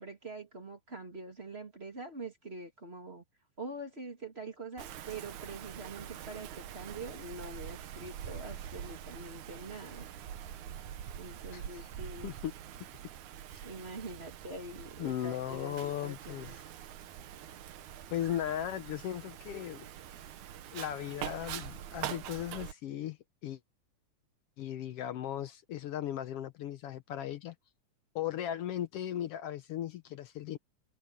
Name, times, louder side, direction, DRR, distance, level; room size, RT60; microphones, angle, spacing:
voice 1, 0.0-3.2 3.6-10.1 11.2-12.3 13.6-16.5, right 2 dB, 20° right, 2.7 m, -44 dB
Wind, 4.8-22.7, right 10 dB, 75° right, 2.6 m, -44 dB
voice 2, 11.5-11.9 12.2-12.5 15.0-16.6 18.1-19.9 20.7-23.2 23.4-23.6 24.6-27.5 28.1-30.6, left 11 dB, 75° left, 1.4 m, -37 dB
omnidirectional pair, 3.5 m